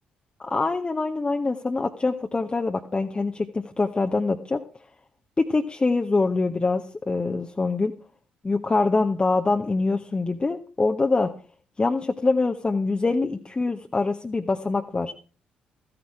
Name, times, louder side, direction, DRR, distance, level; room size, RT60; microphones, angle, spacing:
voice 1, 0.4-4.6 5.4-7.9 8.4-11.3 11.8-15.1, left 3 dB, 25° left, 5 dB, 0.9 m, -24 dB
14.5 x 9.7 x 4.9 m, 0.38 s
figure-of-eight pair, 45°, 4 cm